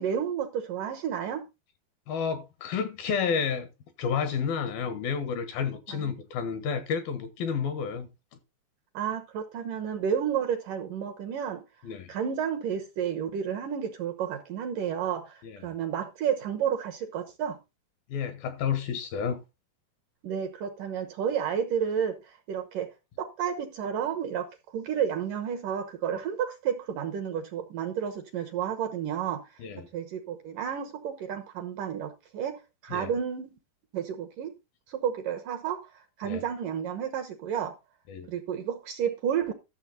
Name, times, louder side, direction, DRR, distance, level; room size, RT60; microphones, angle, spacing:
voice 1, 0.0-1.5 5.9-6.1 8.9-11.6 12.1-17.6 20.2-29.4 29.9-33.6 33.9-34.5 34.9-37.7 38.3-39.5, right 8 dB, 70° right, 2.2 m, -31 dB
voice 2, 2.1-3.7 4.0-8.1 11.8-12.1 15.4-15.6 18.1-19.4 29.6-29.9 32.9-33.1 36.2-36.4 38.1-38.3, left 6 dB, 70° left, 2.8 m, -30 dB
13.0 x 6.9 x 4.0 m
omnidirectional pair, 4.8 m